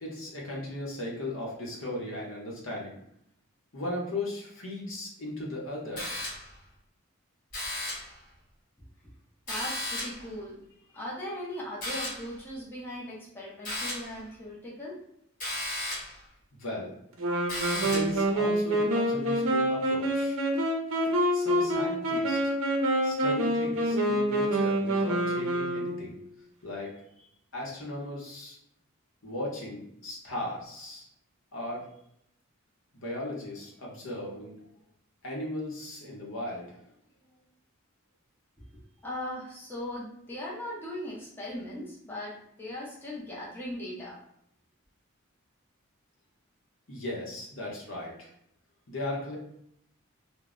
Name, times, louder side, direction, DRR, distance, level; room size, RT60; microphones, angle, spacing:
voice 1, 0.0-3.0 3.7-6.1 16.5-16.9 17.8-20.4 21.3-22.4 23.0-26.1 26.6-27.0 27.5-28.6 29.2-31.1 31.5-31.9 32.9-34.6 35.2-36.7 46.9-48.3 48.9-49.4, left 1 dB, 65° left, -3 dB, 0.8 m, -37 dB
sound 1, 6.0-6.6 7.5-8.2 9.5-10.3 11.8-12.3 13.6-14.2 15.4-16.2 17.5-18.2, left 1 dB, 40° left, 1.0 m, -35 dB
voice 2, 9.5-10.6 10.9-15.0 39.0-44.2, left 1 dB, 10° left, -7 dB, 0.6 m, -39 dB
Wind instrument woodwind instrument, 17.2-26.2, right 1 dB, 75° right, 0.6 m, -27 dB
2.1 x 2.1 x 3.6 m, 0.74 s
head